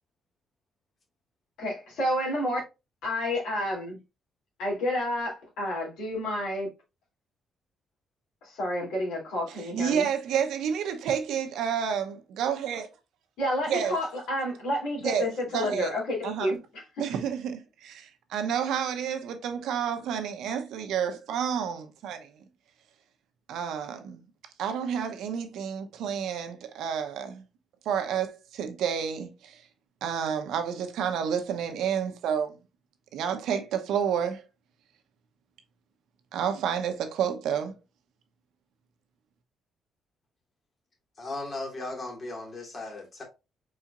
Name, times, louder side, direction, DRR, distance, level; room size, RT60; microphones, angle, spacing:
voice 1, 1.6-2.6 3.0-4.0 4.6-6.7 8.4-10.1 13.4-16.8, left 1 dB, 90° left, 2.9 m, -30 dB
voice 2, 9.5-12.9 13.7-14.0 15.0-15.3 15.5-16.5 17.0-22.3 23.5-24.2 24.6-27.4 27.8-29.6 30.0-32.6 33.1-34.4 36.3-37.7, right 8 dB, 85° right, 0.9 m, -30 dB
voice 3, 41.2-43.2, left 2 dB, 45° left, 2.5 m, -37 dB
4.9 x 4.3 x 2.5 m
cardioid pair, 90°, 0 cm